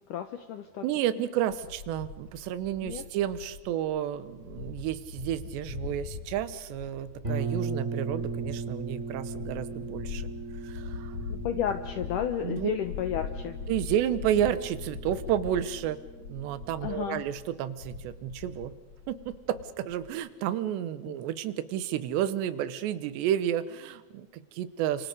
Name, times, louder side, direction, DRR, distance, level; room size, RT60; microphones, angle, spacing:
voice 1, 0.1-0.8 2.8-3.0 11.3-13.6 16.8-17.2 21.1-21.2, left 9 dB, 80° left, 8 dB, 1.9 m, -32 dB
voice 2, 0.8-10.3 10.6-11.2 12.4-12.7 13.7-16.0 16.3-18.7 19.1-25.1, right 11 dB, 90° right, 13 dB, 3.2 m, -31 dB
sound 1, 1.5-20.1, left 5 dB, 50° left, 2.5 m, -41 dB
sound 2, 7.2-16.9, right 4 dB, 15° right, 5.2 m, -38 dB
29.5 x 26.5 x 5.3 m, 1.1 s
omnidirectional pair, 4.8 m